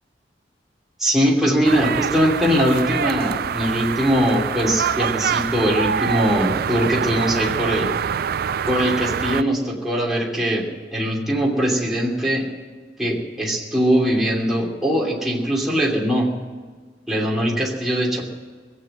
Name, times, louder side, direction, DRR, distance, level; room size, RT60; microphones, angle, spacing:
voice 1, 1.0-7.9 8.7-12.5 13.0-16.3 17.1-18.2, equal, ahead, -4 dB, 2.9 m, -21 dB
sound 1, 1.6-9.4, right 7 dB, 55° right, 0.4 m, -25 dB
21.0 x 8.0 x 7.7 m, 1.5 s
head